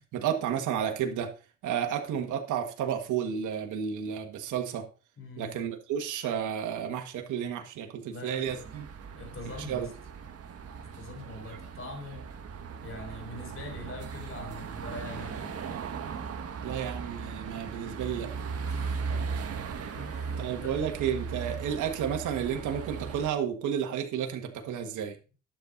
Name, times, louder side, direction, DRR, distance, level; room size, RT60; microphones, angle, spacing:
voice 1, 0.1-1.3 1.6-4.9 5.4-8.9 9.7-9.9 16.6-18.3 20.4-25.2, right 8 dB, 80° right, 4 dB, 1.7 m, -32 dB
voice 2, 5.2-5.5 8.0-8.8 9.2-9.9 10.9-12.3 12.8-15.6 18.6-19.6 19.9-20.7, left 2 dB, 45° left, 4 dB, 4.0 m, -43 dB
sound 1, 8.5-23.3, right 5 dB, 50° right, 1.6 m, -38 dB
11.5 x 7.4 x 4.0 m, 0.35 s
cardioid pair, 90°, 30 cm